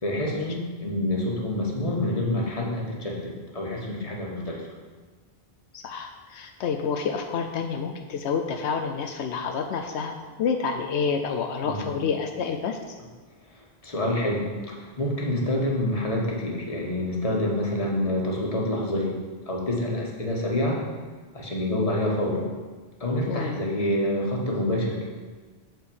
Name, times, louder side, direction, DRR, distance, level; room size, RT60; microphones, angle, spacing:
voice 1, 0.0-4.6 11.6-11.9 13.8-19.1 19.5-20.8 21.3-22.5 23.0-25.1, left 1 dB, 35° left, -2 dB, 1.5 m, -27 dB
voice 2, 5.7-12.8 23.3-23.6, left 6 dB, 85° left, 4 dB, 0.9 m, -29 dB
7.7 x 4.4 x 7.1 m, 1.4 s
omnidirectional pair, 1.1 m